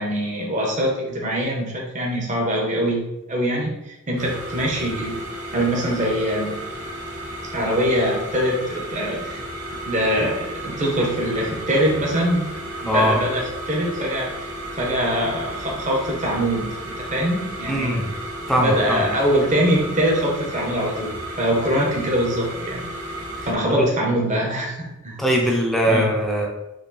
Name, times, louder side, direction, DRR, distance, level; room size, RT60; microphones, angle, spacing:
voice 1, 0.0-3.0 3.3-5.2 5.5-6.6 7.5-9.4 9.9-14.3 14.8-18.1 18.6-22.8 23.4-25.2 25.9-26.2, equal, 35° right, -1 dB, 0.9 m, -23 dB
sound 1, 4.2-23.5, right 1 dB, 80° right, 1.0 m, -33 dB
voice 2, 12.9-13.2 17.7-18.1 18.5-19.1 23.7-23.9 25.2-26.5, equal, ahead, -1 dB, 0.6 m, -21 dB
5.0 x 2.5 x 4.0 m, 0.96 s
head